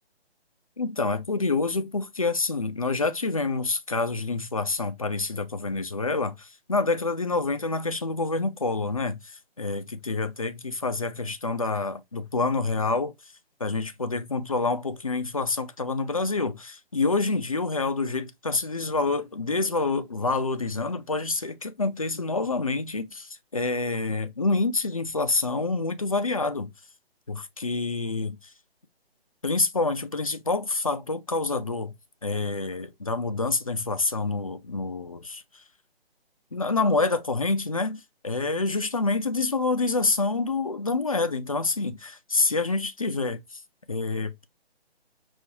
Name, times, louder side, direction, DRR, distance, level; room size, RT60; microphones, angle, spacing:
voice 1, 0.8-13.1 13.6-26.7 27.3-28.5 29.4-31.9 32.2-35.4 36.5-43.6 43.9-44.4, left 3 dB, 35° left, 0.4 m, -27 dB
5.7 x 2.4 x 2.8 m
figure-of-eight pair, 150°, 32 cm